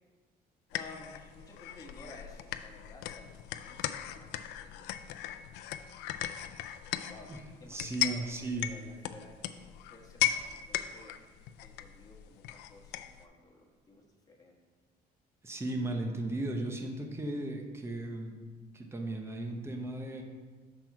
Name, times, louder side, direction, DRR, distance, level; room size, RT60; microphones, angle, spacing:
sound 1, 0.7-13.2, left 12 dB, 85° left, 0.4 m, -38 dB
voice 1, 0.7-5.3 7.1-11.3 11.6-14.6, left 2 dB, 20° left, -1 dB, 1.4 m, -54 dB
voice 2, 7.7-8.7 15.4-18.4 18.7-20.2, right 2 dB, 15° right, 3 dB, 0.8 m, -36 dB
6.1 x 4.4 x 5.8 m, 1.4 s
cardioid pair, 110°, 17 cm